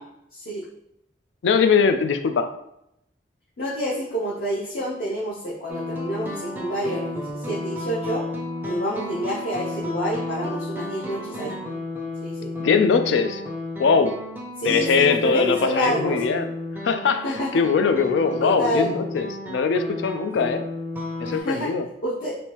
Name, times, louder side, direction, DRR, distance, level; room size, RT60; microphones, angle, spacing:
voice 1, 0.3-0.6 3.6-8.3 8.6-11.6 12.2-12.5 14.6-16.2 17.2-17.6 18.4-18.9 21.3-21.7 22.0-22.3, equal, 55° left, -6 dB, 0.7 m, -28 dB
voice 2, 1.4-2.5 12.6-13.4 13.8-14.2 14.6-16.5 16.8-20.7 21.2-21.9, left 5 dB, 90° left, 9 dB, 0.3 m, -21 dB
sound 1, 5.7-21.4, left 2 dB, 10° right, 0.4 m, -33 dB
3.4 x 2.6 x 2.9 m, 0.79 s
head